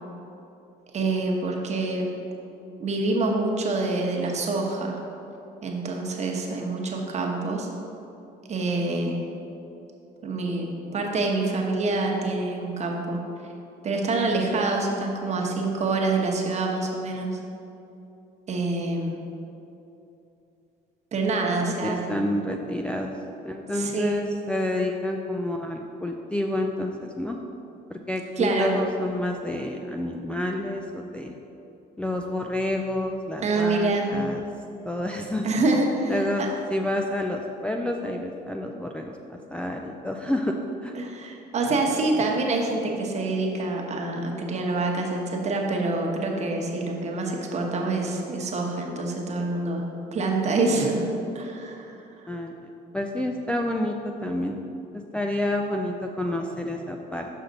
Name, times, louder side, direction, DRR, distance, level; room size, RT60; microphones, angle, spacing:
voice 1, 0.9-2.1 2.8-5.0 5.6-7.7 8.5-9.2 10.2-10.7 10.9-13.2 13.8-17.3 18.5-19.1 21.1-22.1 23.7-24.2 28.4-28.7 33.4-34.1 35.4-36.5 40.9-49.8 50.1-51.0 51.3-51.9, right 3 dB, 40° right, 0 dB, 1.1 m, -26 dB
voice 2, 21.6-23.1 23.4-27.4 27.9-31.4 32.0-34.4 34.8-35.5 36.1-40.5 40.8-40.9 52.3-52.5 52.9-54.6 54.9-57.3, left 1 dB, 5° left, 1 dB, 0.4 m, -29 dB
6.5 x 5.7 x 4.0 m, 2.8 s
cardioid pair, 110°, 17 cm